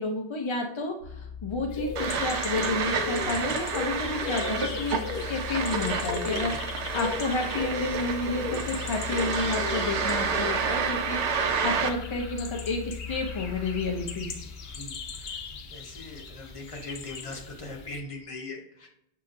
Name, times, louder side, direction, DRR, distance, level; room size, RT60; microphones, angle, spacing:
voice 1, 0.0-14.3, left 3 dB, 50° left, 2 dB, 0.3 m, -31 dB
sound 1, 1.0-17.7, left 7 dB, 45° right, 1.5 m, -41 dB
sound 2, 1.7-18.0, left 4 dB, 65° left, 0.8 m, -38 dB
sound 3, 2.0-11.9, right 5 dB, 85° right, 0.9 m, -30 dB
voice 2, 14.4-18.9, left 2 dB, 35° left, 1 dB, 0.8 m, -41 dB
6.3 x 2.8 x 2.5 m, 0.76 s
omnidirectional pair, 1.1 m